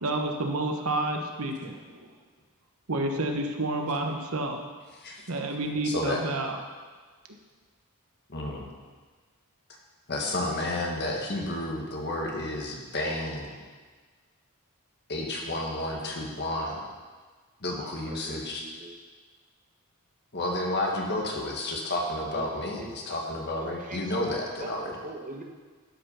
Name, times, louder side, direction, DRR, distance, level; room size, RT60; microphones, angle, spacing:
voice 1, 0.0-1.8 2.9-4.6 5.3-6.6, right 2 dB, 75° right, 3 dB, 1.2 m, -29 dB
voice 2, 5.8-6.2 8.3-8.7 10.1-13.6 15.1-16.8 17.6-18.7 20.3-25.0, left 1 dB, 50° left, 0 dB, 1.7 m, -31 dB
voice 3, 17.8-19.0 22.3-24.2 24.6-25.4, right 2 dB, 35° right, 3 dB, 1.1 m, -43 dB
12.0 x 5.9 x 5.6 m, 1.4 s
head